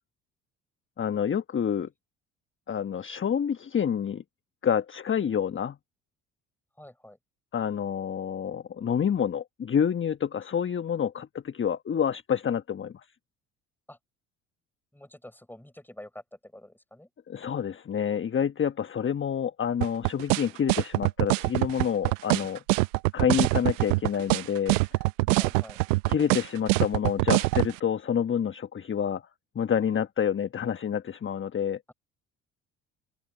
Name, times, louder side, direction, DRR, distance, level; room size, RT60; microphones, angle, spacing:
voice 1, 1.0-1.9 2.7-4.2 4.6-5.8 7.5-12.9 17.3-22.6 23.1-24.8 26.1-29.2 29.5-31.8, left 8 dB, 30° left, 1.2 m, -28 dB
voice 2, 6.8-7.2 13.9-14.0 14.9-17.1 25.3-25.8, left 1 dB, 5° left, 6.9 m, -47 dB
sound 1, 19.8-27.7, right 24 dB, 75° right, 0.7 m, -23 dB
open air
hypercardioid pair, 60°, 37 cm